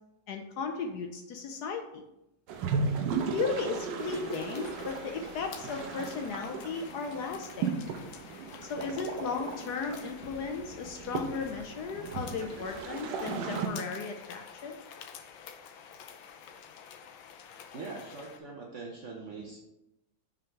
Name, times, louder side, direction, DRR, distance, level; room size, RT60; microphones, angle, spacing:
voice 1, 0.3-2.0 3.3-7.7 8.6-14.8, left 5 dB, 70° left, 4 dB, 1.0 m, -36 dB
sound 1, 2.5-13.7, right 5 dB, 80° right, 1.4 m, -36 dB
sound 2, 4.0-18.4, left 7 dB, 90° left, 1.4 m, -49 dB
voice 2, 17.7-19.6, right 4 dB, 55° right, -1 dB, 0.8 m, -42 dB
5.8 x 3.8 x 4.5 m, 0.90 s
omnidirectional pair, 2.1 m